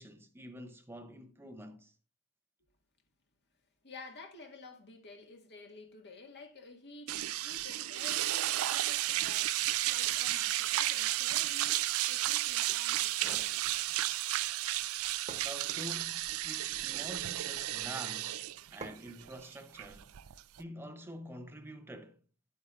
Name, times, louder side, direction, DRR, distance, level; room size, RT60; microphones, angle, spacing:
voice 1, 0.0-1.9 15.4-20.1 20.6-22.2, equal, 10° right, 0.6 m, -47 dB
voice 2, 3.8-11.8 12.1-14.0, left 3 dB, 50° left, 1.8 m, -51 dB
sound 1, 7.1-20.6, right 15 dB, 65° right, 0.4 m, -33 dB
sound 2, 13.0-13.6 14.8-14.9 15.3-16.1 16.7-17.2 18.8-19.2, right 3 dB, 30° right, 1.2 m, -48 dB
10.5 x 8.4 x 2.4 m
head